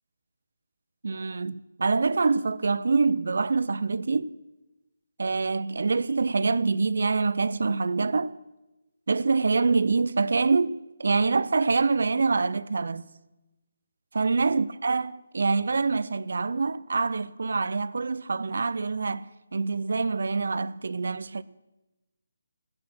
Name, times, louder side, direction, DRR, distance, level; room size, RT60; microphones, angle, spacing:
voice 1, 1.0-4.3 5.2-8.3 9.1-13.0 14.1-21.4, right 4 dB, 70° right, 0.6 m, -25 dB
16.0 x 9.7 x 6.1 m
hypercardioid pair, 165°, 0 cm